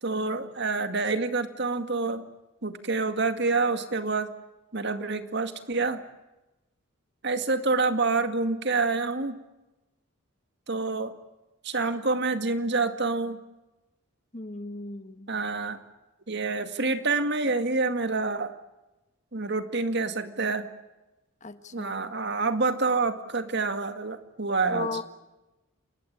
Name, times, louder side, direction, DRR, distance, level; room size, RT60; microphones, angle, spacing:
voice 1, 0.0-2.2 2.6-4.3 4.7-6.0 7.2-9.4 10.7-11.1 11.6-13.4 15.3-15.8 16.3-18.5 19.3-20.7 21.7-24.9, right 3 dB, 55° right, 9 dB, 2.0 m, -27 dB
voice 2, 14.3-15.3 21.4-21.9 24.7-25.0, left 3 dB, 35° left, 10 dB, 1.4 m, -36 dB
29.5 x 20.0 x 8.7 m, 1.0 s
head